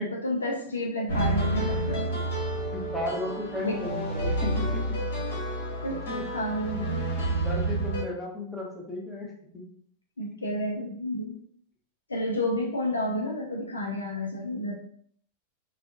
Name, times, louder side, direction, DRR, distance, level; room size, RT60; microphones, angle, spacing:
voice 1, 0.0-2.1 3.6-3.8 4.4-4.5 5.8-6.0 6.3-7.0 10.2-11.4 12.1-14.7, left 1 dB, 75° left, 1 dB, 0.6 m, -31 dB
sound 1, 1.1-8.0, right 1 dB, 60° left, 1.4 m, -29 dB
voice 2, 2.7-5.0 5.9-6.2 6.7-6.8 7.2-9.6, left 1 dB, ahead, -3 dB, 1.0 m, -35 dB
4.9 x 2.3 x 2.4 m, 0.63 s
figure-of-eight pair, 90°, 0 cm